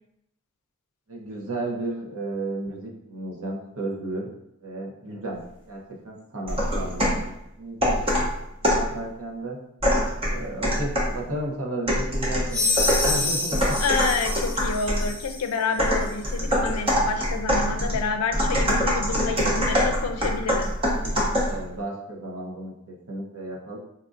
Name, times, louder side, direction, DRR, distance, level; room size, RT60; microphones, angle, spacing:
voice 1, 1.1-4.3 4.6-5.4 5.7-8.0 8.6-9.6 10.2-13.7 21.4-23.8, right 2 dB, 70° right, -2 dB, 0.8 m, -33 dB
sound 1, 6.5-7.3 7.8-8.9 9.8-11.2 11.9-15.1 15.8-21.6, equal, 25° right, 0.7 m, -24 dB
sound 2, 12.5-15.5, left 3 dB, 5° left, 0.4 m, -27 dB
voice 2, 13.8-20.7, left 5 dB, 85° left, 7 dB, 0.4 m, -29 dB
4.3 x 2.5 x 2.5 m, 0.81 s
head